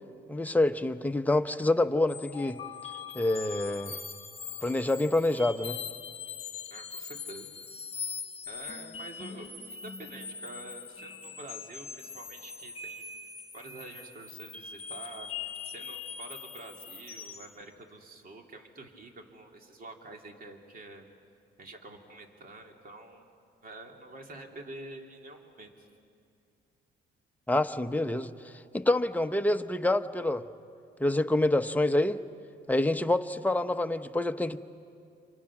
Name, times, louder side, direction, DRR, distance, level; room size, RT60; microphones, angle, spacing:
voice 1, 0.3-2.6 3.1-4.0 4.6-5.8 27.5-28.3 28.7-30.4 31.0-32.2 32.7-34.6, left 2 dB, 10° left, 7 dB, 0.9 m, -27 dB
sound 1, 2.1-17.6, left 6 dB, 30° left, 1.5 m, -42 dB
voice 2, 6.7-7.5 8.5-13.0 13.5-21.1 21.6-23.3 23.6-25.9, right 2 dB, 45° right, 2 dB, 2.9 m, -47 dB
27.5 x 26.0 x 6.1 m, 2.5 s
cardioid pair, 90°, 20 cm